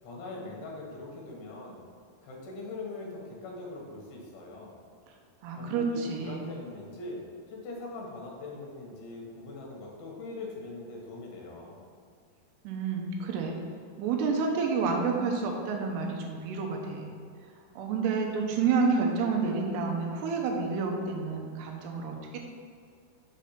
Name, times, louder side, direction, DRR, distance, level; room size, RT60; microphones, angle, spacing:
voice 1, 0.0-1.8 2.2-4.8 5.5-11.8, left 2 dB, 70° left, -2 dB, 3.0 m, -42 dB
voice 2, 5.4-6.4 12.6-13.6 14.0-17.1 17.8-22.4, right 4 dB, 80° right, 1 dB, 2.8 m, -29 dB
6.9 x 4.2 x 5.7 m, 2.3 s
omnidirectional pair, 4.8 m